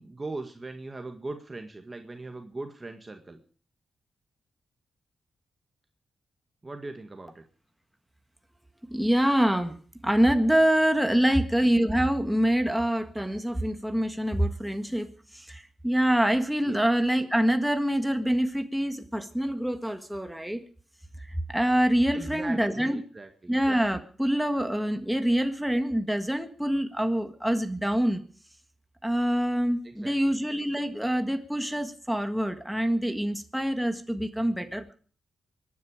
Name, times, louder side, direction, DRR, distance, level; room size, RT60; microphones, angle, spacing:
voice 1, 0.0-3.4 6.6-7.4 11.2-11.3 16.6-16.8 22.1-23.5 29.8-30.3 34.4-34.6, right 2 dB, 25° right, 5 dB, 1.8 m, -40 dB
voice 2, 8.9-9.8 10.0-15.1 15.3-20.6 21.3-23.0 23.5-28.2 29.0-34.9, equal, 5° right, 7 dB, 1.6 m, -25 dB
24.0 x 10.5 x 5.0 m, 0.43 s
cardioid pair, 80°, 0 cm